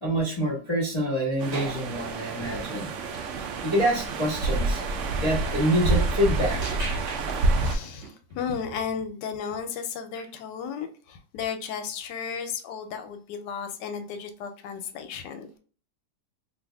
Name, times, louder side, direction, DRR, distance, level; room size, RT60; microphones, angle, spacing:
voice 1, 0.0-2.9 3.6-6.8, equal, 25° left, -7 dB, 0.7 m, -26 dB
sound 1, 1.4-7.7, right 3 dB, 85° right, 0.6 m, -28 dB
sound 2, 1.5-3.4 3.8-4.0 6.6-8.5 10.2-10.3 14.6-14.7, right 3 dB, 45° right, 1.1 m, -39 dB
voice 2, 7.6-15.6, left 6 dB, 85° left, 8 dB, 1.2 m, -34 dB
2.7 x 2.6 x 3.3 m, 0.40 s
omnidirectional pair, 1.8 m